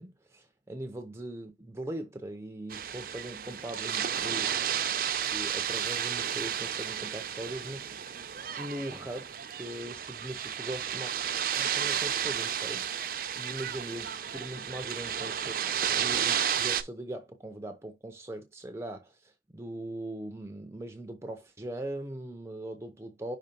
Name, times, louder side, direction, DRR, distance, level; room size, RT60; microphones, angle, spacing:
voice 1, 0.0-4.5 5.2-7.9 8.6-11.1 11.5-12.9 13.4-15.5 16.0-23.4, right 1 dB, 15° right, 0.6 m, -40 dB
sound 1, 2.7-16.8, right 9 dB, 50° right, 0.6 m, -32 dB
5.6 x 3.2 x 5.2 m
head